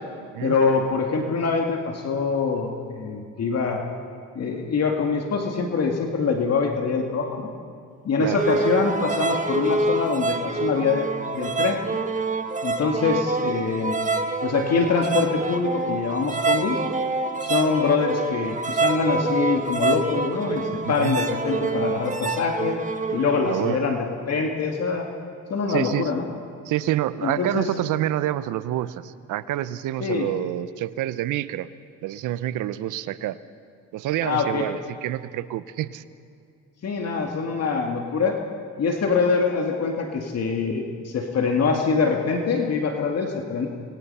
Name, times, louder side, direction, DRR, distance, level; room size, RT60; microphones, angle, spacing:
voice 1, 0.4-3.8 4.4-7.5 8.0-11.1 11.3-11.8 12.6-14.0 14.4-16.8 17.4-22.8 23.1-25.1 25.5-26.3 27.2-27.7 30.0-30.3 34.2-34.7 36.8-38.4 38.8-43.7, left 5 dB, 55° left, 2 dB, 2.2 m, -24 dB
sound 1, 8.3-23.7, right 3 dB, 25° right, 1.4 m, -26 dB
voice 2, 20.8-21.2 23.4-23.8 25.7-26.1 26.7-31.7 32.0-33.4 33.9-36.0, right 13 dB, 85° right, 15 dB, 0.8 m, -27 dB
26.0 x 20.5 x 5.6 m, 2.3 s
cardioid pair, 90°, 30 cm